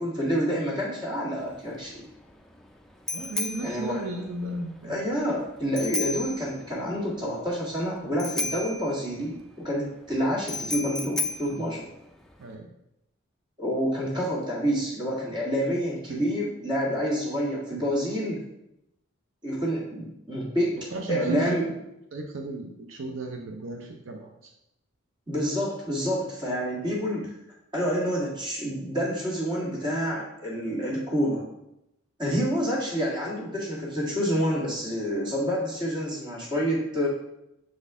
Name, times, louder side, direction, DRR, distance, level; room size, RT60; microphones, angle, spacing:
voice 1, 0.0-2.1 3.6-4.0 4.8-9.4 9.6-11.9 13.6-18.4 19.4-20.8 21.1-21.7 25.3-27.3 27.7-31.4 32.2-37.1, equal, 20° right, -4 dB, 1.6 m, -28 dB
Bicycle bell, 1.4-12.5, left 2 dB, ahead, 0.3 m, -35 dB
voice 2, 3.1-5.0 12.4-12.7 16.1-16.2 20.9-21.7 22.1-24.5, right 2 dB, 70° right, 3 dB, 0.6 m, -35 dB
6.3 x 4.2 x 3.6 m, 0.85 s
head